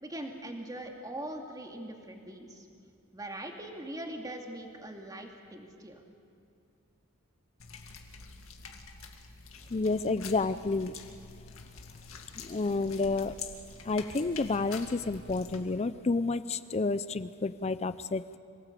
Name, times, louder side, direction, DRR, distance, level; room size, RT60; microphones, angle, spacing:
voice 1, 0.0-2.7 3.1-6.0, right 1 dB, 15° right, 2 dB, 2.4 m, -41 dB
sound 1, 7.6-15.6, left 5 dB, 75° left, 2.2 m, -47 dB
voice 2, 9.7-10.9 12.4-13.4 13.8-18.4, left 3 dB, 30° left, 14 dB, 0.5 m, -30 dB
26.5 x 18.5 x 8.4 m, 2.4 s
head